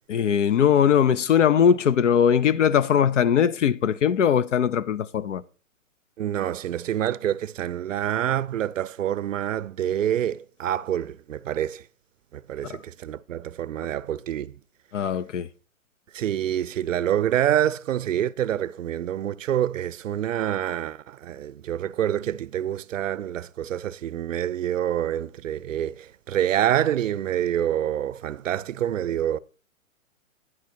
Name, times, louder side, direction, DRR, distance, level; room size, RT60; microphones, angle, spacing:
voice 1, 0.1-5.4 12.7-12.8 14.9-15.5, left 8 dB, 65° left, 0.6 m, -20 dB
voice 2, 6.2-11.8 12.3-14.5 16.1-29.4, right 11 dB, 65° right, 0.5 m, -27 dB
9.7 x 6.1 x 4.3 m
hypercardioid pair, 165°, 41 cm